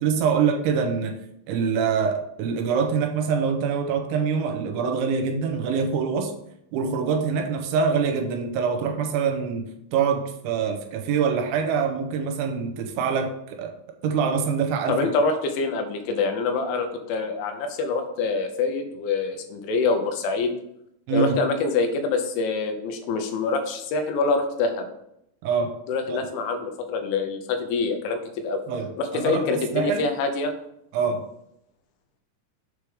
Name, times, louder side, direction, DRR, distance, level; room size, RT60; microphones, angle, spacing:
voice 1, 0.0-1.2 1.5-6.3 6.7-13.7 14.0-15.1 21.1-21.4 25.4-25.8 26.1-26.2 28.7-28.9 29.1-29.4 29.7-30.0 30.9-31.3, right 6 dB, 90° right, 4 dB, 3.0 m, -24 dB
voice 2, 14.9-20.5 21.1-24.9 25.9-28.6 29.0-30.5, left 4 dB, 85° left, 6 dB, 3.2 m, -25 dB
7.3 x 3.5 x 4.8 m, 0.78 s
omnidirectional pair, 5.4 m